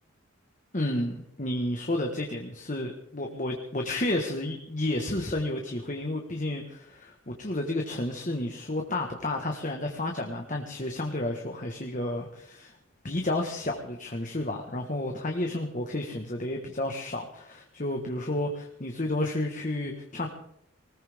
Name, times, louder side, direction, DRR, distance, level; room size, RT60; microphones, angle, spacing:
voice 1, 0.7-12.7 13.0-20.3, left 1 dB, 40° left, 3 dB, 1.5 m, -31 dB
20.5 x 19.5 x 3.6 m, 0.74 s
head